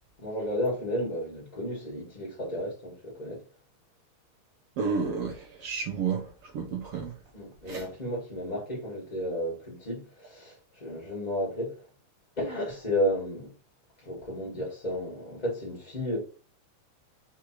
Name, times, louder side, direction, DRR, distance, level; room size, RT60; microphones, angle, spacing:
voice 1, 0.2-3.4 7.3-11.8 12.4-13.5 14.0-16.2, equal, 60° left, 0.4 m, -32 dB
voice 2, 4.8-7.1 7.7-7.9, right 5 dB, 70° right, 1.4 m, -31 dB
4.8 x 2.4 x 4.4 m
omnidirectional pair, 3.3 m